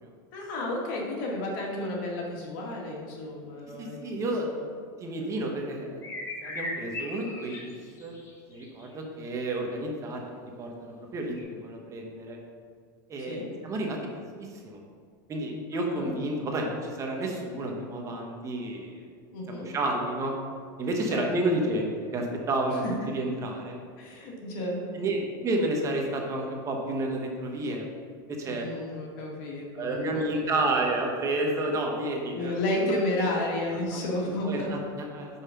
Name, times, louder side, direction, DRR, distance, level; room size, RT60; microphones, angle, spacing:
voice 1, 0.3-4.1 5.2-5.3 13.3-13.5 15.7-16.2 19.3-19.7 21.1-21.5 22.8-22.9 24.0-24.9 28.5-30.7 32.3-34.8, left 1 dB, 70° left, -2 dB, 1.8 m, -32 dB
voice 2, 3.8-4.5 5.0-6.0 6.4-8.1 8.5-10.2 10.6-12.4 13.1-14.0 14.4-14.8 15.3-19.1 19.5-20.3 20.8-23.8 24.4-24.6 24.9-27.8 28.3-28.7 29.7-32.6 33.9-34.0 34.4-35.3, right 2 dB, 30° right, 1 dB, 1.1 m, -31 dB
sound 1, 6.0-8.9 11.4-11.5, left 2 dB, 25° left, 1.5 m, -37 dB
5.6 x 4.8 x 5.7 m, 2.1 s
supercardioid pair, 130°, 11 cm